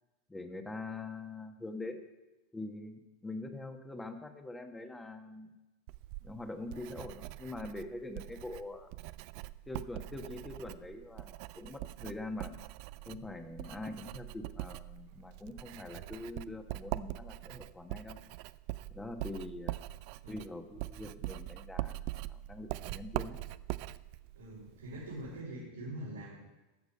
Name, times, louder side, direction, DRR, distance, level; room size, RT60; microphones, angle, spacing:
voice 1, 0.3-2.0 2.5-5.5 6.2-8.9 9.7-12.5 13.1-18.2 18.9-19.8 20.3-22.0 22.3-23.4, left 2 dB, 10° left, 6 dB, 1.3 m, -44 dB
Writing, 5.9-25.4, right 17 dB, 60° right, 0.4 m, -43 dB
voice 2, 24.3-26.4, right 1 dB, 90° right, -8 dB, 4.1 m, -44 dB
13.5 x 7.0 x 5.4 m, 1.1 s
hypercardioid pair, 100°, 0 cm